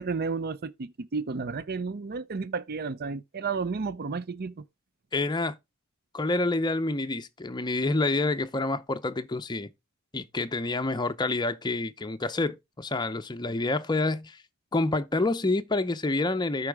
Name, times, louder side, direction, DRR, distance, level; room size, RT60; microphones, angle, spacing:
voice 1, 0.0-4.6, right 4 dB, 45° right, 0.6 m, -32 dB
voice 2, 5.1-5.6 6.1-9.7 10.1-14.4 14.7-16.7, left 2 dB, 20° left, 0.7 m, -28 dB
13.0 x 4.8 x 3.4 m
head